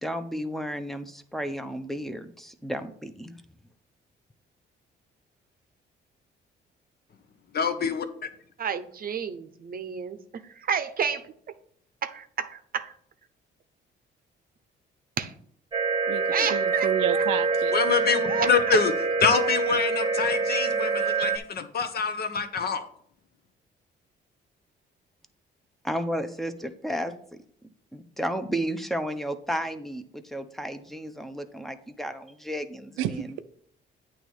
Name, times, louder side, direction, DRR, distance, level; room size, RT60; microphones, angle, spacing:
voice 1, 0.0-3.4 25.8-27.1 27.9-33.4, equal, ahead, 9 dB, 0.7 m, -33 dB
voice 2, 7.5-8.0 16.4-16.5 17.7-18.9 19.2-22.9, left 5 dB, 50° left, 8 dB, 0.9 m, -25 dB
voice 3, 8.6-11.3 12.0-12.9 15.2-15.3 16.3-17.2 18.3-18.8, right 7 dB, 45° right, 10 dB, 0.7 m, -31 dB
sound 1, 15.7-21.4, right 4 dB, 25° right, 1.0 m, -26 dB
voice 4, 16.5-17.7 33.0-33.4, right 11 dB, 90° right, 11 dB, 0.5 m, -30 dB
8.8 x 3.1 x 6.4 m, 0.63 s
cardioid pair, 90°, 20 cm